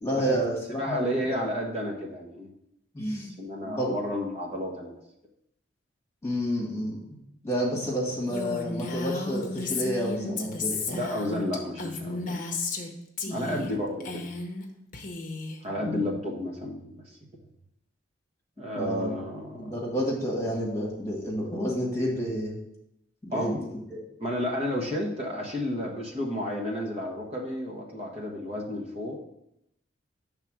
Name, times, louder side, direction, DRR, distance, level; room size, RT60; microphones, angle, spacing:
voice 1, 0.0-1.4 2.9-3.3 3.6-3.9 6.2-7.0 7.4-11.0 13.3-13.6 15.8-16.1 18.7-19.1 19.6-22.6 23.3-24.0, equal, 15° left, -3 dB, 1.8 m, -30 dB
voice 2, 0.7-2.5 3.4-5.0 10.9-12.4 13.3-14.3 15.6-17.2 18.6-19.7 23.3-23.7 24.2-29.2, left 1 dB, 35° right, 0 dB, 1.0 m, -32 dB
Female speech woman speaking, 8.3-12.9 13.2-13.7 14.0-14.6 14.9-15.6, left 3 dB, 45° left, 0.8 m, -33 dB
5.7 x 3.6 x 5.9 m, 0.80 s
head